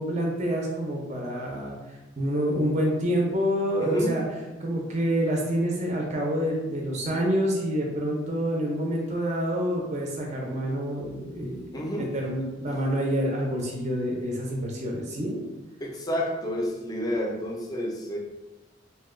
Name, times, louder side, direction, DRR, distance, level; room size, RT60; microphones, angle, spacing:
voice 1, 0.0-1.8 2.2-4.2 4.6-11.7 12.1-15.4, equal, 40° right, -2 dB, 0.5 m, -27 dB
voice 2, 3.8-4.2 11.7-12.1 15.8-18.2, equal, 20° left, 0 dB, 0.4 m, -29 dB
2.6 x 2.2 x 3.6 m, 1.1 s
head